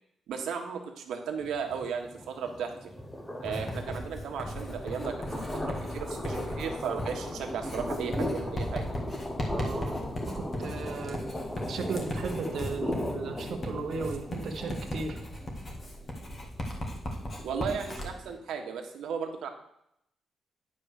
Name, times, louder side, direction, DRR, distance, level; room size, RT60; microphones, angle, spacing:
voice 1, 0.3-2.9 3.4-8.9 17.4-19.5, right 6 dB, 80° right, 3 dB, 1.4 m, -35 dB
sound 1, 1.4-18.3, left 1 dB, 10° left, 1.0 m, -38 dB
Writing, 3.5-18.1, left 1 dB, 30° left, 1.7 m, -37 dB
voice 2, 9.5-10.0 10.4-11.2 11.7-15.2, right 4 dB, 55° right, 5 dB, 1.2 m, -35 dB
9.7 x 4.5 x 6.6 m, 0.76 s
cardioid pair, 145°, 0 cm